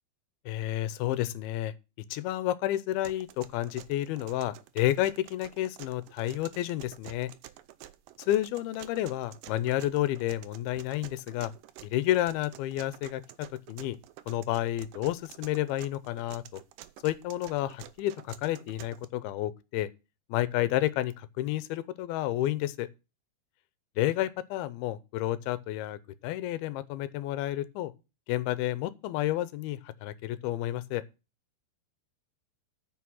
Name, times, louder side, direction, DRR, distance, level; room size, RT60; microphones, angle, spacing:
voice 1, 0.5-1.7 2.1-7.3 8.2-11.5 11.8-14.0 14.3-16.6 17.0-19.9 20.3-22.9 24.0-27.9 28.3-31.0, left 14 dB, 85° left, 2.6 m, -30 dB
sound 1, 3.0-19.1, right 13 dB, 80° right, 2.1 m, -50 dB
9.4 x 6.1 x 6.2 m
omnidirectional pair, 4.4 m